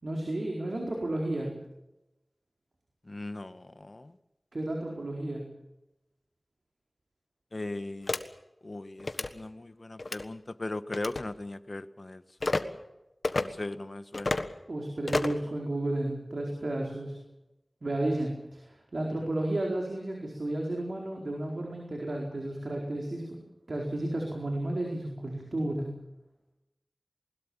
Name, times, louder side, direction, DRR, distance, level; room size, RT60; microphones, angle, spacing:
voice 1, 0.0-1.6 4.5-5.5 14.7-17.2 17.8-23.4 23.7-26.0, right 1 dB, 80° right, 0 dB, 4.5 m, -32 dB
voice 2, 3.1-4.1 7.5-8.1 8.6-12.6 13.3-14.4, left 2 dB, 60° left, 12 dB, 1.3 m, -39 dB
sound 1, 8.1-8.2 9.0-9.3 10.0-10.2 10.9-11.2 12.4-12.6 13.2-13.4 14.1-14.5 15.1-15.4, left 2 dB, 80° left, 1.4 m, -29 dB
21.0 x 20.5 x 7.2 m, 0.94 s
wide cardioid pair, 40°, 0 cm